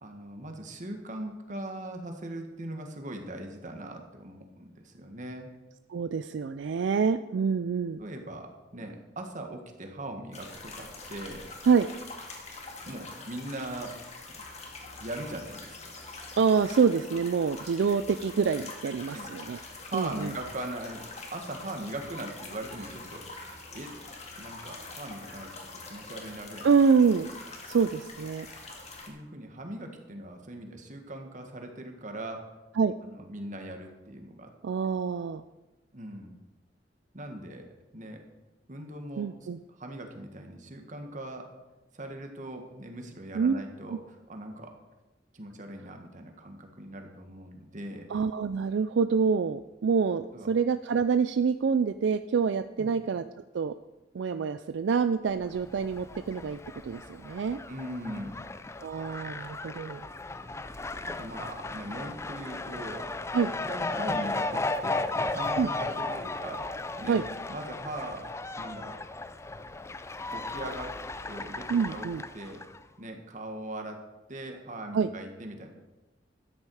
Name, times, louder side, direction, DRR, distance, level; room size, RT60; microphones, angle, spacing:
voice 1, 0.0-5.5 8.0-11.5 12.9-13.9 15.0-16.0 17.7-17.9 19.1-19.3 19.8-21.0 21.3-23.5 23.7-23.9 24.4-26.7 29.1-32.4 33.0-34.5 35.9-36.4 37.1-37.7 37.9-38.2 38.7-39.3 39.8-41.5 41.9-44.0 44.3-44.7 45.3-48.1 50.3-50.5 52.8-52.9 57.7-58.4 61.2-63.1 63.7-66.6 67.0-67.2 67.5-68.3 68.6-69.0 70.3-70.9 71.3-72.1 72.3-72.6 73.0-74.0 74.3-75.7, right 1 dB, 45° right, 4 dB, 1.7 m, -40 dB
voice 2, 5.9-8.0 11.6-11.9 16.4-19.6 19.9-20.3 26.6-27.3 27.7-28.5 32.8-32.9 34.6-35.4 39.2-39.6 43.3-43.6 43.9-44.0 48.1-53.2 53.5-53.7 54.1-57.6 58.8-60.1 63.3-63.5 65.6-65.7 67.1-67.2 71.7-72.2 74.9-75.1, right 5 dB, 75° right, 11 dB, 0.4 m, -26 dB
sound 1, 10.3-29.1, left 3 dB, 40° left, 2.0 m, -44 dB
Fowl, 55.4-72.8, left 2 dB, 15° left, 0.4 m, -35 dB
13.0 x 9.8 x 4.8 m, 1.1 s
head